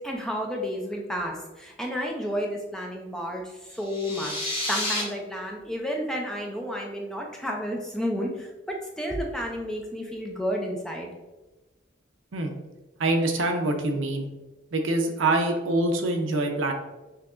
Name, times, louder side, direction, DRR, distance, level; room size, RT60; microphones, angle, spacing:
voice 1, 0.0-3.4 3.7-11.1, equal, 5° left, 0 dB, 0.4 m, -31 dB
sound 1, 3.8-5.0, left 1 dB, 25° left, 1.0 m, -30 dB
voice 2, 13.0-14.3 14.7-16.7, right 2 dB, 80° right, 4 dB, 0.6 m, -25 dB
5.7 x 2.8 x 2.4 m, 1.1 s
head